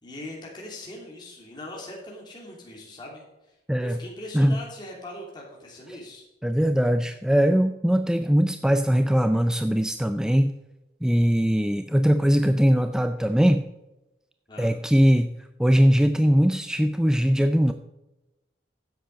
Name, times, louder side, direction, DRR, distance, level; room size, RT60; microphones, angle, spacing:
voice 1, 0.0-3.5 3.8-6.2 14.5-14.7, left 1 dB, 25° left, -3 dB, 2.9 m, -41 dB
voice 2, 3.7-4.0 4.3-4.6 6.4-10.6 11.0-13.6 14.6-15.3 15.6-17.7, equal, 5° right, 8 dB, 0.4 m, -21 dB
10.0 x 7.8 x 5.2 m, 0.96 s
head